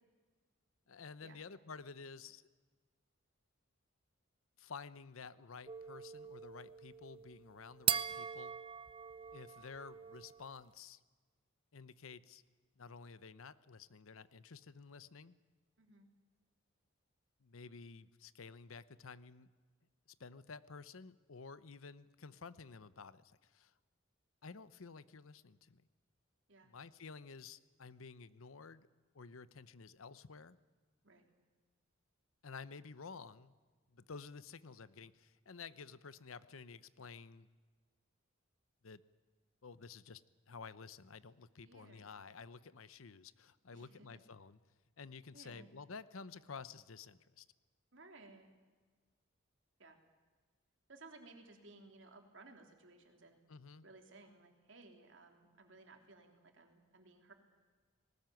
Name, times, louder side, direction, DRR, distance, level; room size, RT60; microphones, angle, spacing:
voice 1, 0.9-2.4 4.6-8.5 9.3-11.0 11.7-12.4 12.8-15.4 17.4-19.5 20.2-23.7 24.4-25.8 26.6-28.9 29.1-30.6 32.4-33.5 33.9-37.5 38.8-39.0 39.6-44.6 45.0-47.5 53.5-53.9, left 5 dB, 80° left, 16 dB, 0.8 m, -52 dB
sound 1, 5.7-10.5, right 9 dB, 25° right, 0.6 m, -41 dB
voice 2, 15.8-16.1 26.5-26.7 31.0-31.2 41.6-42.1 43.7-44.2 45.3-45.7 47.9-48.5 49.8-50.0 50.9-53.4 53.8-57.3, right 3 dB, 60° right, 4 dB, 3.3 m, -59 dB
19.5 x 19.0 x 9.2 m, 1.4 s
head